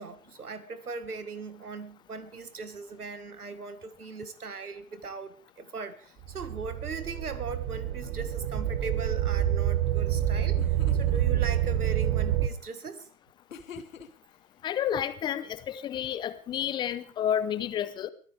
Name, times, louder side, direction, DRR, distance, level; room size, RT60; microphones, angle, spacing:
voice 1, 0.0-13.1, right 4 dB, 85° right, 1.9 m, -39 dB
sound 1, 6.3-12.5, right 11 dB, 20° right, 1.1 m, -27 dB
sound 2, 10.5-11.2 13.5-14.3, left 5 dB, 60° left, 2.1 m, -45 dB
voice 2, 14.6-18.1, left 9 dB, 10° left, 0.7 m, -30 dB
23.0 x 15.5 x 3.5 m
hypercardioid pair, 125°, 44 cm